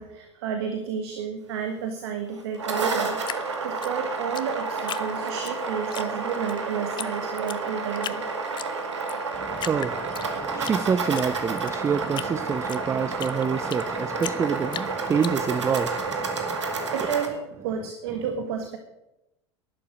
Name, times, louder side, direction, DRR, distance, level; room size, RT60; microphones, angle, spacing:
voice 1, 0.0-3.2 3.6-8.2 16.9-18.8, right 7 dB, 60° right, 1.6 m, -31 dB
sound 1, 2.4-17.3, right 4 dB, 75° right, 2.0 m, -30 dB
Drip, 3.2-5.5 5.9-6.6 7.0-7.1 7.4-8.2 8.6-9.2 9.6-10.8 11.1-13.9 14.2-15.8, left 10 dB, 30° left, 0.7 m, -36 dB
voice 2, 9.4-16.9, right 6 dB, 20° right, 0.5 m, -27 dB
11.5 x 11.0 x 6.4 m
figure-of-eight pair, 80°, 15 cm